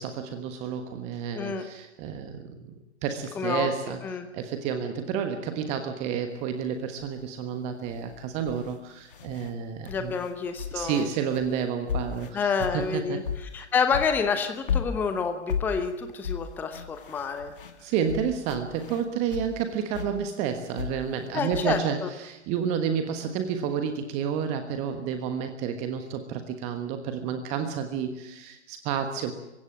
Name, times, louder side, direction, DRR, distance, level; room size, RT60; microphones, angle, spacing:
voice 1, 0.0-4.0 4.3-10.2 10.7-13.2 17.8-29.3, right 7 dB, 20° right, 8 dB, 1.3 m, -30 dB
voice 2, 1.3-1.7 3.4-3.7 4.0-4.3 9.8-11.1 12.3-13.2 13.5-17.5 21.3-22.1, left 5 dB, 5° left, 8 dB, 0.8 m, -28 dB
sound 1, 7.0-7.2 7.8-9.5 9.9-13.6 13.9-19.6 19.9-21.6, left 7 dB, 50° left, 2.6 m, -35 dB
29.0 x 16.5 x 7.5 m, 0.98 s
figure-of-eight pair, 125°, 34 cm